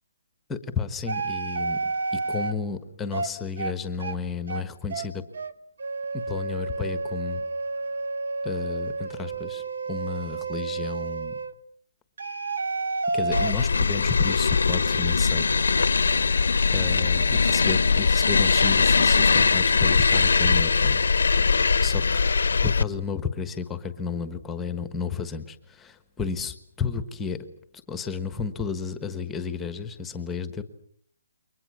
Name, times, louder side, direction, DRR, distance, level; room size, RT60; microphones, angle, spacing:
voice 1, 0.5-1.8 2.1-5.2 6.1-7.4 8.4-9.6 9.9-11.4 13.1-15.4 16.7-21.0 21.8-22.0 22.6-27.4 27.9-30.6, left 5 dB, 5° left, 10 dB, 1.3 m, -32 dB
sound 1, 1.1-2.5 3.1-3.3 3.6-3.7 4.0-4.2 4.5-4.6 4.9-5.1 5.3-5.5 5.8-11.5 12.2-13.5, right 3 dB, 70° right, 1.8 m, -30 dB
sound 2, 13.3-22.8, left 5 dB, 85° left, 1.0 m, -21 dB
29.0 x 23.5 x 6.3 m, 0.64 s
hypercardioid pair, 175°, 0 cm